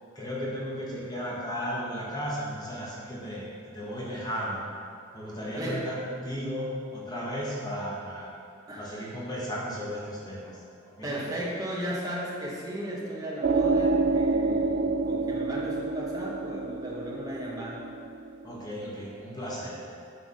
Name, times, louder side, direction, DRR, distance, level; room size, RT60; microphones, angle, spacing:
voice 1, 0.1-4.6 5.1-8.3 8.7-10.5 10.9-11.1 18.4-19.8, equal, 20° left, -6 dB, 1.4 m, -35 dB
voice 2, 5.6-5.9 8.7-9.1 11.0-17.8, equal, 20° right, -4 dB, 1.2 m, -35 dB
sound 1, 13.4-18.6, right 3 dB, 50° right, 0.3 m, -27 dB
9.6 x 3.5 x 5.7 m, 2.5 s
head